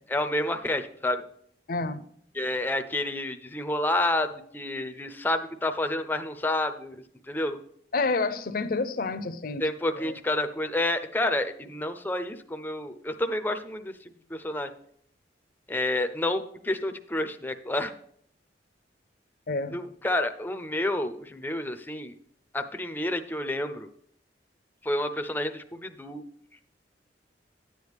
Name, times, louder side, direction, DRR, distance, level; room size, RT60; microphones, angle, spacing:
voice 1, 0.1-1.2 2.3-7.6 9.6-13.9 14.3-14.7 15.7-17.9 19.7-22.1 22.5-23.9 24.8-26.3, left 1 dB, 10° left, 9 dB, 0.5 m, -29 dB
voice 2, 1.7-2.0 7.9-9.7 10.0-10.1 19.5-19.8, left 3 dB, 55° left, 10 dB, 0.6 m, -29 dB
10.5 x 8.1 x 3.4 m, 0.65 s
head